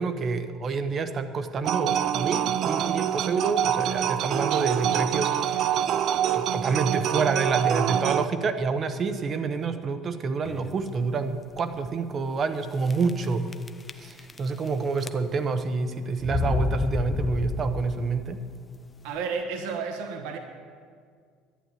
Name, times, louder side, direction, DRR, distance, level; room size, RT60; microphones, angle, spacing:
voice 1, 0.0-5.7 6.3-13.5 14.0-18.4, right 4 dB, 30° right, 10 dB, 0.8 m, -28 dB
sound 1, 1.6-8.2, right 10 dB, 45° right, 0.5 m, -25 dB
sound 2, 10.4-10.9 11.5-11.6 11.9-12.0 12.9-13.3 13.5-14.7 15.0-15.5 16.2-18.1, left 5 dB, 15° left, 0.4 m, -30 dB
voice 2, 19.0-20.4, right 5 dB, 80° right, 4 dB, 1.2 m, -31 dB
11.5 x 10.5 x 9.3 m, 2.1 s
cardioid pair, 160°, 0 cm